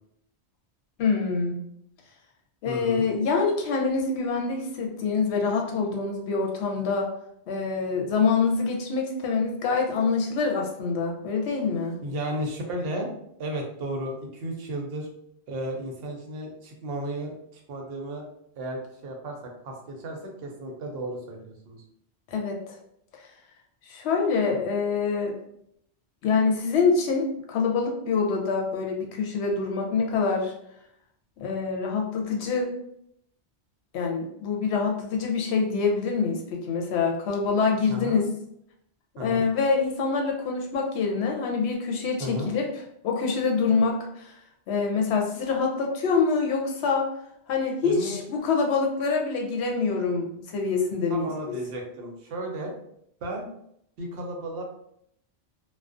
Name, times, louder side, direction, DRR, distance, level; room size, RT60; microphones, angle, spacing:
voice 1, 1.0-1.6 2.6-7.1 7.5-12.0 22.3-22.6 23.9-25.3 26.2-30.5 31.4-32.7 33.9-38.3 39.2-42.7 43.0-44.3 44.7-47.1 47.5-51.5, left 4 dB, 75° left, 1 dB, 0.8 m, -25 dB
voice 2, 2.6-3.0 12.0-13.1 13.4-15.1 15.5-18.3 18.6-21.8 37.9-38.2 39.2-39.5 42.2-42.5 47.8-48.2 51.1-52.7 53.2-53.5 54.0-54.6, right 1 dB, 65° right, 2 dB, 0.7 m, -34 dB
2.4 x 2.1 x 2.4 m, 0.74 s
omnidirectional pair, 1.1 m